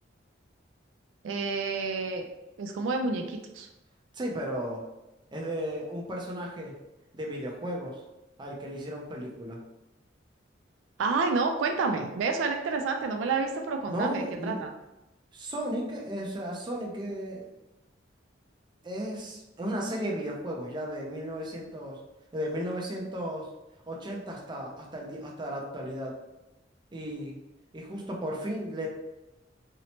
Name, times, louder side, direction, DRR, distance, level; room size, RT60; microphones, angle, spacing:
voice 1, 1.2-2.3 2.6-3.7 11.0-14.7, right 4 dB, 85° right, 4 dB, 0.3 m, -29 dB
voice 2, 4.1-4.8 5.3-6.7 7.1-8.0 8.4-9.6 13.9-14.6 15.3-17.5 18.8-22.0 22.3-23.5 23.9-26.1 26.9-27.4 27.7-28.9, equal, 25° right, -2 dB, 0.4 m, -34 dB
2.8 x 2.0 x 2.8 m, 0.97 s
head